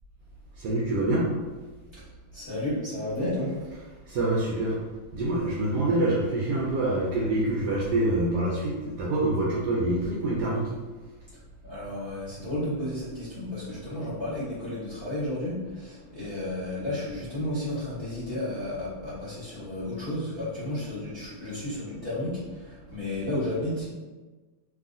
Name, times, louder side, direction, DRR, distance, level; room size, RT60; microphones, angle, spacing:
voice 1, 0.6-1.3 3.7-4.8 5.1-10.7 22.9-23.0, right 2 dB, 70° right, -5 dB, 1.0 m, -26 dB
voice 2, 1.9-3.8 11.6-23.9, left 1 dB, 20° left, -11 dB, 0.9 m, -32 dB
3.0 x 2.7 x 2.5 m, 1.3 s
omnidirectional pair, 2.1 m